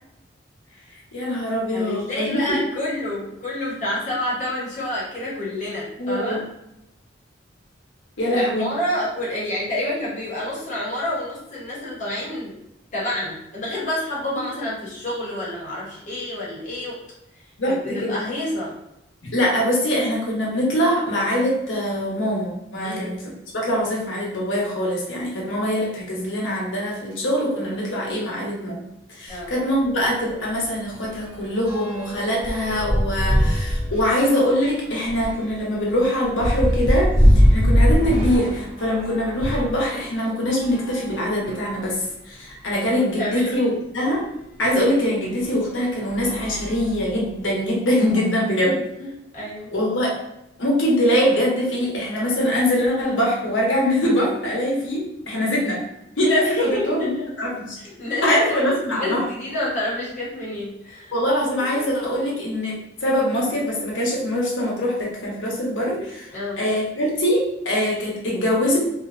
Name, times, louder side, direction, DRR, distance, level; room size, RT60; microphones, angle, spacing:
voice 1, 1.1-2.3 6.0-6.4 8.2-8.7 14.3-14.5 17.6-18.2 19.2-28.8 29.1-44.2 44.6-48.8 49.7-50.1 50.6-55.8 56.2-57.1 57.4-57.8 58.2-59.2 61.1-68.8, equal, 80° left, -3 dB, 0.8 m, -23 dB
voice 2, 1.7-6.4 8.3-12.6 12.9-17.0 17.7-18.8 22.8-23.1 29.3-29.5 43.0-43.7 48.6-49.7 56.4-57.3 57.8-58.4 58.9-61.2 61.6-61.8 66.3-66.6, left 1 dB, 40° left, -7 dB, 0.8 m, -28 dB
sound 1, 29.3-29.5 29.8-29.9 30.3-39.8 40.5-41.8 42.5-42.6 42.8-42.9 44.6-44.8 45.4-45.6 46.0-47.3, equal, 30° right, 0.6 m, -22 dB
2.5 x 2.1 x 2.4 m, 0.85 s
head